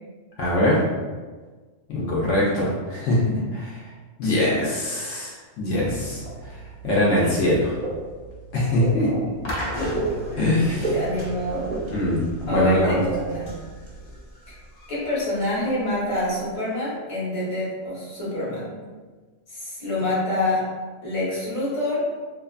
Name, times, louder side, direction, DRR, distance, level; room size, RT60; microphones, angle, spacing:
voice 1, 0.4-0.8 1.9-3.8 4.2-6.2 6.8-7.8 8.5-9.1 9.8-9.9 10.3-10.9 11.9-12.2 12.4-13.0, left 1 dB, 75° left, -5 dB, 1.0 m, -22 dB
sound 1, 5.7-14.0, right 3 dB, 60° right, 0.4 m, -34 dB
voice 2, 8.9-9.3 9.9-10.0 10.8-11.8 12.5-13.5 14.5-14.6 14.9-18.7 19.5-20.7 21.0-22.1, left 1 dB, 30° left, -7 dB, 0.8 m, -26 dB
sound 2, 9.4-16.5, equal, 55° left, 0.7 m, -35 dB
2.5 x 2.4 x 2.3 m, 1.4 s
omnidirectional pair, 1.3 m